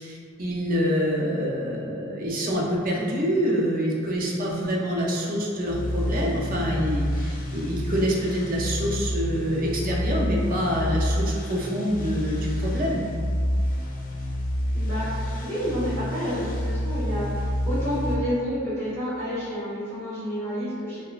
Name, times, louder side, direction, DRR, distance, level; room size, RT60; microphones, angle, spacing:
voice 1, 0.0-13.1, equal, 45° right, -3 dB, 0.5 m, -26 dB
sound 1, 5.7-18.1, equal, 40° left, 0.3 m, -28 dB
voice 2, 14.7-21.0, equal, 15° left, -13 dB, 0.9 m, -29 dB
2.9 x 2.1 x 2.3 m, 2.2 s
head